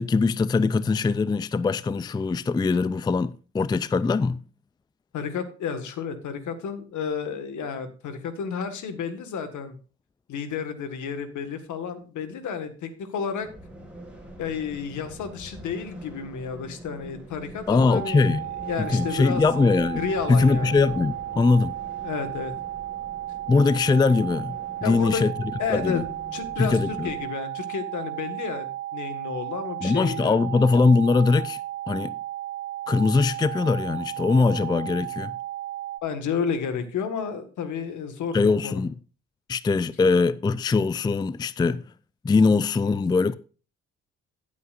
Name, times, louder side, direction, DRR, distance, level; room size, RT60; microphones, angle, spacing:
voice 1, 0.0-4.4 17.7-18.5 18.9-20.0 20.3-21.8 23.5-24.6 24.8-25.3 25.7-26.0 26.6-27.1 29.8-31.6 31.9-32.2 32.9-35.3 38.3-39.0 39.5-41.8 42.2-43.4, left 4 dB, 15° left, 0.4 m, -21 dB
voice 2, 5.1-9.7 10.3-13.5 14.4-18.3 18.6-19.4 20.0-20.7 22.0-22.5 24.8-25.2 25.6-26.0 26.3-30.4 36.0-38.8, left 6 dB, 75° left, 1.7 m, -31 dB
sound 1, 13.4-27.3, right 1 dB, 5° right, 4.1 m, -44 dB
sound 2, 17.9-36.0, right 14 dB, 80° right, 0.8 m, -34 dB
15.5 x 8.3 x 2.5 m
cardioid pair, 90°, 30 cm